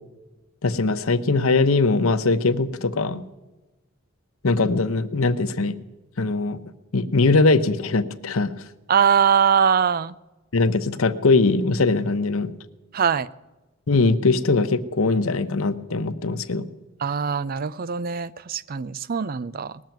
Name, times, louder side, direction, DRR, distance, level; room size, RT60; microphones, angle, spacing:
voice 1, 0.6-3.2 4.4-5.8 6.2-6.6 6.9-8.5 10.5-12.5 13.9-16.7, left 3 dB, 90° left, 11 dB, 0.9 m, -21 dB
voice 2, 8.9-10.1 12.9-13.3 17.0-19.8, right 7 dB, 45° right, 18 dB, 0.5 m, -22 dB
19.5 x 7.5 x 9.2 m, 1.1 s
head